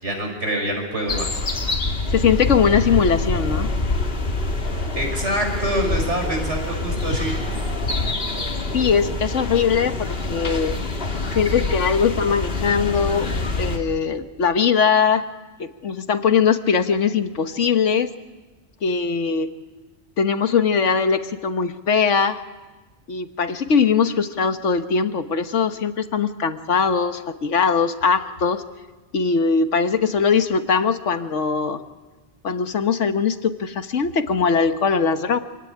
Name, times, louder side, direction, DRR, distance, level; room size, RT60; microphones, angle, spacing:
voice 1, 0.0-1.4 4.9-7.4, right 1 dB, 75° right, 3 dB, 5.5 m, -25 dB
sound 1, 1.1-13.8, left 2 dB, 55° left, 2.3 m, -25 dB
voice 2, 2.1-3.7 8.7-10.8 11.3-13.3 13.6-15.2 15.6-18.1 18.8-19.5 20.2-22.4 23.1-28.6 29.1-31.8 32.4-35.4, left 6 dB, 90° left, 9 dB, 1.5 m, -20 dB
26.5 x 17.0 x 10.0 m, 1.2 s
omnidirectional pair, 1.2 m